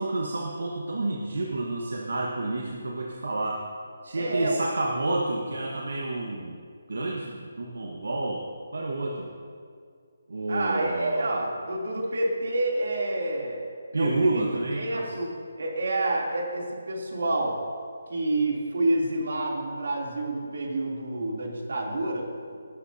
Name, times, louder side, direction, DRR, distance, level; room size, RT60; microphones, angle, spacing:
voice 1, 0.0-3.6 4.0-6.6 6.9-8.5 8.7-9.3 10.3-11.3 13.9-15.1, right 2 dB, 90° right, -1 dB, 1.3 m, -29 dB
voice 2, 4.1-4.6 10.5-13.6 14.0-14.4 14.7-17.6 18.1-22.5, right 2 dB, 70° right, -2 dB, 3.0 m, -28 dB
18.0 x 11.5 x 2.8 m, 2.2 s
hypercardioid pair, 170°, 0 cm